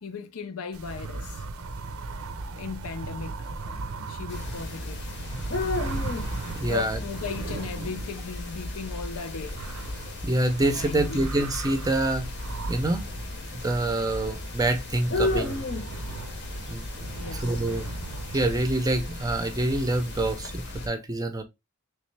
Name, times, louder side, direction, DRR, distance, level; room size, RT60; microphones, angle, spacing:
voice 1, 0.0-1.4 2.5-3.4 4.1-5.1 6.6-9.6 10.7-11.2 17.1-17.6, left 5 dB, 85° left, 0.6 m, -36 dB
sound 1, 0.7-20.3, right 3 dB, 80° right, 0.6 m, -38 dB
sound 2, 4.3-20.9, left 2 dB, 55° left, 0.7 m, -35 dB
voice 2, 6.5-7.0 10.2-12.3 12.7-13.0 13.5-15.6 16.6-16.9 17.3-17.9 18.3-21.4, right 2 dB, 15° right, 0.5 m, -26 dB
3.3 x 3.1 x 3.2 m
head